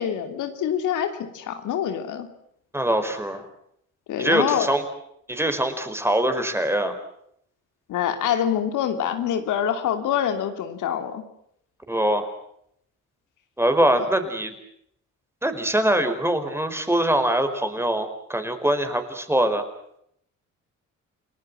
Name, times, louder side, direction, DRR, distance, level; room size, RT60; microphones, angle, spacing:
voice 1, 0.0-2.3 4.1-4.7 7.9-11.2, left 9 dB, 85° left, 7 dB, 3.1 m, -25 dB
voice 2, 2.7-3.4 4.2-4.8 5.3-7.0 11.9-12.3 13.6-14.5 15.4-19.6, right 1 dB, 10° right, 8 dB, 4.8 m, -23 dB
29.5 x 19.0 x 7.7 m, 0.71 s
cardioid pair, 90°, 30 cm